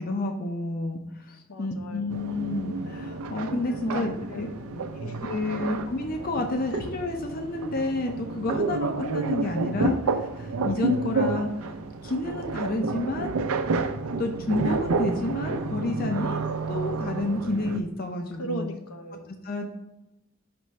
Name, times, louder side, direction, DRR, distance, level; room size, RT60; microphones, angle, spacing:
voice 1, 0.0-4.5 5.2-11.7 12.0-13.4 14.2-16.4 16.7-18.7 19.4-19.7, left 2 dB, 40° left, 4 dB, 0.5 m, -30 dB
voice 2, 1.5-2.2 3.7-5.2 5.6-5.7 6.7-6.8 18.4-19.4, equal, 80° left, 5 dB, 0.8 m, -38 dB
sound 1, 2.1-17.8, right 3 dB, 80° right, 0.5 m, -30 dB
6.0 x 3.1 x 5.6 m, 0.95 s
head